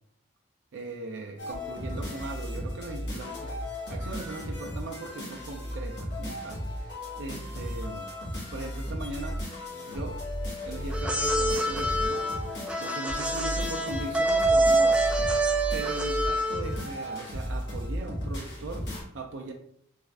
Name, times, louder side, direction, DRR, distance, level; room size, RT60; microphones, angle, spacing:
voice 1, 0.7-8.1 8.5-9.4 9.9-10.2 10.6-12.3 12.8-15.1 15.7-19.5, right 2 dB, 70° right, 1 dB, 0.4 m, -39 dB
sound 1, 1.4-19.0, equal, 60° left, 1.3 m, -35 dB
sound 2, 10.9-16.8, right 2 dB, 5° right, 0.3 m, -26 dB
3.5 x 2.4 x 3.2 m, 0.69 s
head